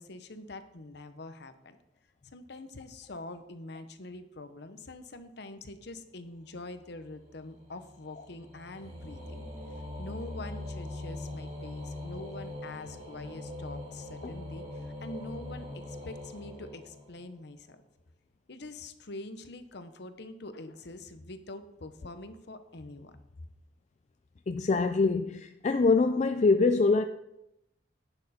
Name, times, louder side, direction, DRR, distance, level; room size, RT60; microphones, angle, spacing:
voice 1, 0.0-1.8 2.3-9.4 10.0-17.8 18.5-23.2, left 2 dB, 60° left, 0.9 m, -44 dB
sound 1, 6.5-17.4, left 1 dB, 35° right, 4.1 m, -42 dB
voice 2, 24.5-27.0, left 3 dB, 40° left, 0.4 m, -24 dB
10.5 x 9.0 x 4.3 m
head